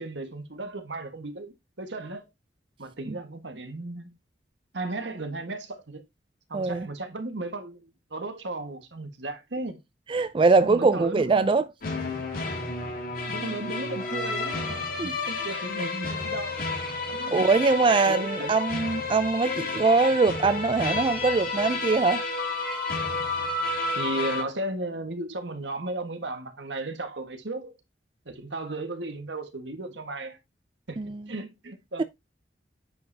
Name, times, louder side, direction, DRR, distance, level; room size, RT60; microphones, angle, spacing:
voice 1, 0.0-2.3 2.8-4.1 4.7-6.0 6.5-9.8 10.6-11.6 13.1-14.7 15.0-16.7 17.1-17.5 18.1-18.6 23.9-27.7 28.2-30.4 30.9-31.0 31.3-32.0, right 2 dB, 80° right, 1.6 m, -35 dB
voice 2, 6.5-6.9 10.1-11.6 15.0-15.1 17.3-22.2 31.0-31.2 32.0-32.1, right 4 dB, 30° right, 0.4 m, -22 dB
sound 1, 11.8-24.4, left 3 dB, 55° left, 2.4 m, -31 dB
9.2 x 5.5 x 2.7 m
head